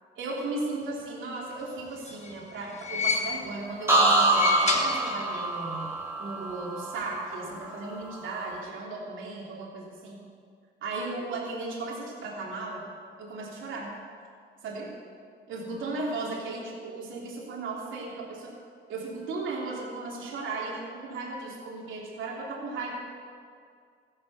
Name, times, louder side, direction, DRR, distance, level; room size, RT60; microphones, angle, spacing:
voice 1, 0.2-5.9 6.2-10.2 10.8-12.8 13.2-13.9 14.6-14.9 15.5-18.5 18.9-22.9, right 3 dB, 75° right, -3 dB, 3.3 m, -36 dB
sound 1, 1.8-3.7 4.2-5.6 5.8-5.9 7.1-7.2, left 4 dB, 35° left, 1.6 m, -31 dB
sound 2, 3.9-7.7 8.1-8.5, right 1 dB, 10° right, 3.0 m, -25 dB
14.5 x 8.3 x 7.0 m, 2.2 s
cardioid pair, 90°, 20 cm